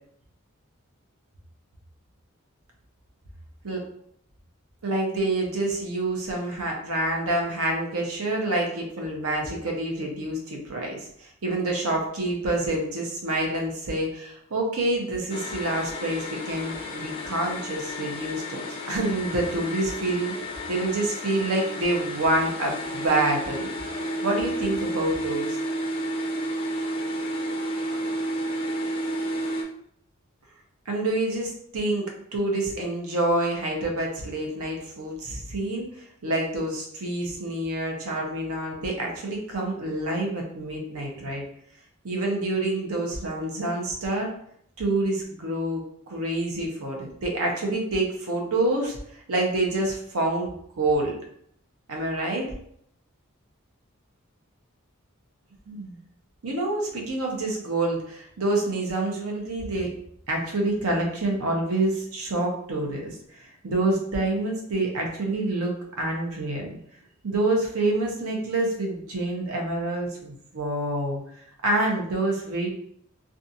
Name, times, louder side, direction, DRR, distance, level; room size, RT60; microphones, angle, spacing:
voice 1, 4.8-20.3 20.7-23.7 24.2-25.6 30.9-41.4 42.0-44.3 44.8-51.2 51.9-52.5 55.7-56.0 56.4-59.9 60.3-66.8 67.2-71.2 71.6-72.7, right 2 dB, 85° right, 0 dB, 0.7 m, -27 dB
sound 1, 15.3-29.6, equal, 25° left, 0.3 m, -31 dB
2.5 x 2.3 x 2.7 m, 0.69 s
head